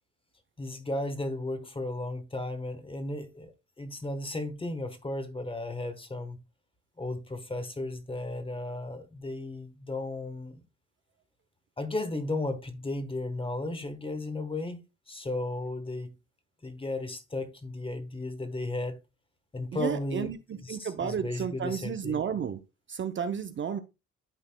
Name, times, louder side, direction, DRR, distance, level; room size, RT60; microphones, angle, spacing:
voice 1, 0.6-6.4 7.0-10.6 11.8-14.8 15.1-16.1 16.6-19.0 19.5-20.3 20.6-22.2, left 2 dB, 20° left, 1.2 m, -35 dB
voice 2, 19.7-22.6 22.9-23.8, right 7 dB, 40° right, 0.6 m, -32 dB
12.0 x 4.0 x 2.2 m
cardioid pair, 90°, 30 cm